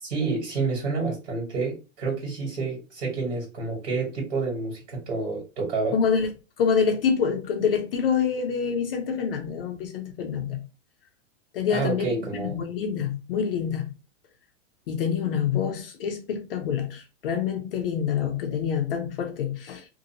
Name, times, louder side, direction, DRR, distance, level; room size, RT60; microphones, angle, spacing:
voice 1, 0.0-6.0 11.7-12.6, right 4 dB, 60° right, 1.7 m, -29 dB
voice 2, 5.9-6.3 6.6-10.6 11.5-13.9 14.9-19.9, left 7 dB, 50° left, 0.4 m, -26 dB
2.6 x 2.5 x 2.7 m
supercardioid pair, 175°, 38 cm